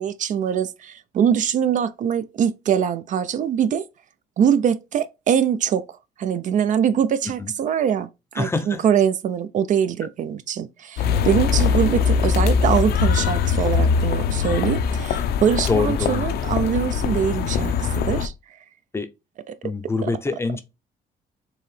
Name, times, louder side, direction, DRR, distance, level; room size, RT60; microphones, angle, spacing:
voice 1, 0.0-3.8 4.4-8.1 8.3-18.3 19.5-19.7 20.0-20.1, right 8 dB, 50° right, 0.4 m, -23 dB
voice 2, 8.4-8.8 15.7-16.2 18.9-19.1 19.6-20.6, left 4 dB, 15° left, 0.5 m, -25 dB
sound 1, 11.0-18.3, left 6 dB, 70° left, 0.5 m, -22 dB
4.7 x 2.8 x 3.2 m
cardioid pair, 150°, 17 cm